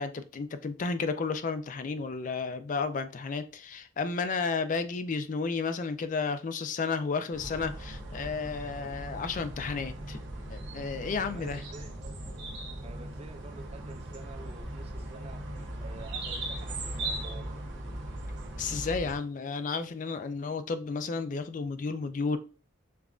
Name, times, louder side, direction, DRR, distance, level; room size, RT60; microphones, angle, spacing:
voice 1, 0.0-10.2 10.5-11.6 18.6-22.4, left 4 dB, 40° left, 0.4 m, -32 dB
sound 1, 7.3-19.2, right 1 dB, 60° right, 0.9 m, -38 dB
voice 2, 11.3-17.5, right 3 dB, 30° right, 0.4 m, -50 dB
6.7 x 2.5 x 2.3 m
head